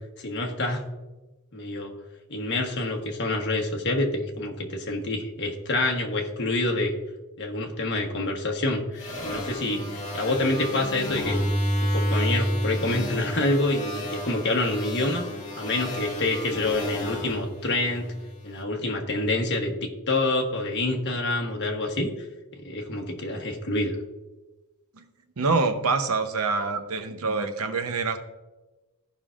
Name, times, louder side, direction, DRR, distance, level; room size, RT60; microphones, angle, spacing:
voice 1, 0.2-0.8 1.5-1.9 2.3-6.9 7.4-11.4 11.8-15.3 15.6-18.1 18.4-22.1 22.5-24.0, left 2 dB, 50° left, 2 dB, 1.2 m, -27 dB
sound 1, 9.0-18.4, equal, 35° left, 1.7 m, -30 dB
voice 2, 25.4-28.2, right 4 dB, 70° right, 8 dB, 0.8 m, -26 dB
16.0 x 5.5 x 2.5 m, 1.1 s
head